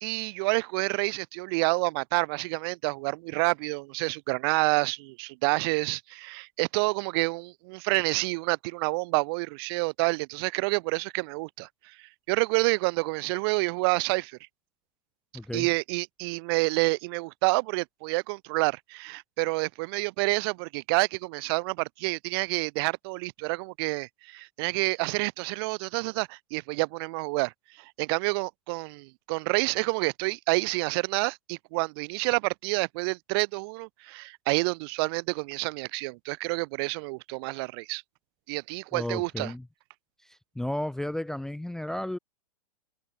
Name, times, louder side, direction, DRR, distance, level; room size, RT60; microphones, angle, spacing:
voice 1, 0.0-14.4 15.5-38.0 38.5-39.5, right 27 dB, 40° right, 0.9 m, -28 dB
voice 2, 15.3-15.7 38.9-39.6 40.3-42.2, left 1 dB, ahead, 0.6 m, -33 dB
open air
figure-of-eight pair, 105°, 20 cm